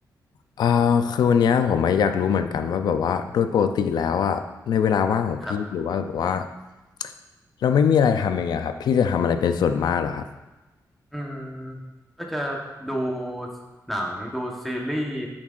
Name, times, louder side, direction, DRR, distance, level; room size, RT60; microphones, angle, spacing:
voice 1, 0.6-6.5 7.0-7.1 7.6-10.2, left 7 dB, 80° left, 8 dB, 0.5 m, -22 dB
voice 2, 11.1-11.8 12.2-13.5 13.9-15.3, equal, ahead, -1 dB, 1.1 m, -30 dB
10.5 x 7.3 x 2.5 m, 1.1 s
wide cardioid pair, 160°, 7 cm